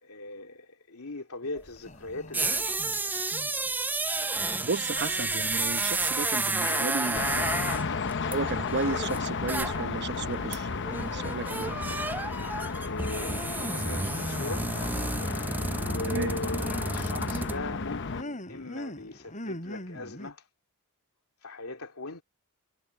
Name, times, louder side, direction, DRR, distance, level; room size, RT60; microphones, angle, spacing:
voice 1, 0.0-3.2 6.6-7.2 12.3-12.5 12.8-14.7 15.8-20.4 21.4-22.2, left 2 dB, 70° left, 2.9 m, -39 dB
sound 1, 1.4-1.5 1.8-2.5 2.8-3.7 4.5-6.6 6.9-8.2 8.5-9.5 9.8-12.2 13.3-13.6 14.1-14.6 14.9-20.3, left 1 dB, 35° left, 7.1 m, -44 dB
sound 2, 1.6-1.7 2.1-9.9 10.2-10.3 10.5-17.6, right 2 dB, 10° right, 0.4 m, -31 dB
voice 2, 4.6-7.3 8.3-11.8 16.1-16.3, right 3 dB, 50° right, 0.9 m, -33 dB
sound 3, 7.1-18.2, left 4 dB, 55° left, 0.9 m, -33 dB
head